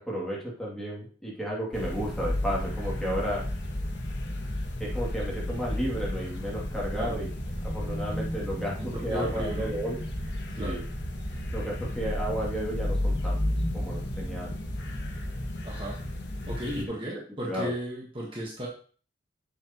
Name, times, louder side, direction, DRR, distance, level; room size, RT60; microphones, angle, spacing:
voice 1, 0.0-3.4 4.8-7.3 7.6-10.0 10.6-10.8 11.5-13.4 13.7-14.5 16.7-16.9 17.5-17.7, equal, 5° left, -5 dB, 2.6 m, -33 dB
sound 1, 1.7-16.9, left 1 dB, 75° left, 1.4 m, -32 dB
voice 2, 8.9-9.7 10.5-10.8 15.6-16.0 16.5-18.7, equal, 30° right, -2 dB, 1.4 m, -35 dB
7.6 x 7.1 x 3.0 m, 0.42 s
head